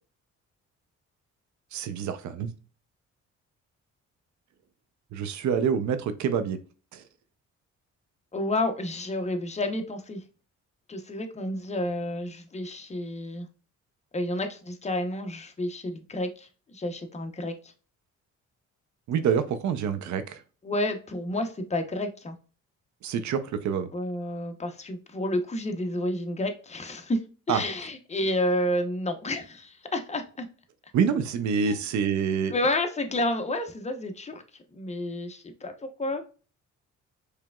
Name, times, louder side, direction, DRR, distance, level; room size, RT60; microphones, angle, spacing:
voice 1, 1.7-2.5 5.1-6.6 6.9-7.0 19.1-20.4 23.0-23.9 27.5-27.6 30.9-32.5, right 7 dB, 70° right, 0.6 m, -26 dB
voice 2, 8.3-10.2 10.9-13.5 14.1-17.7 20.6-22.4 23.9-30.5 31.6-31.8 32.5-34.4 34.7-36.3, left 1 dB, 20° left, 0.8 m, -30 dB
4.7 x 3.3 x 2.3 m
cardioid pair, 90°, 30 cm